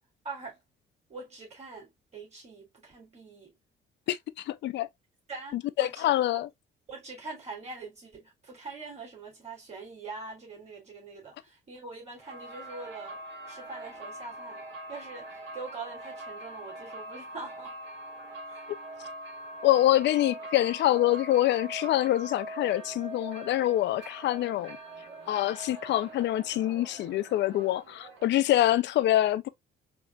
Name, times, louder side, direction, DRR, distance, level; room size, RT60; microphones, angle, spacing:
voice 1, 0.2-0.6 1.1-3.5 5.3-6.1 6.9-13.2 13.5-17.8 18.4-18.6, right 3 dB, 35° right, 3.0 m, -43 dB
voice 2, 4.1-4.9 5.5-6.5 19.6-24.8 25.3-29.5, left 14 dB, 65° left, 0.5 m, -25 dB
sound 1, 12.2-28.6, right 1 dB, 70° right, 2.1 m, -43 dB
4.5 x 2.9 x 2.3 m
cardioid pair, 110°, 20 cm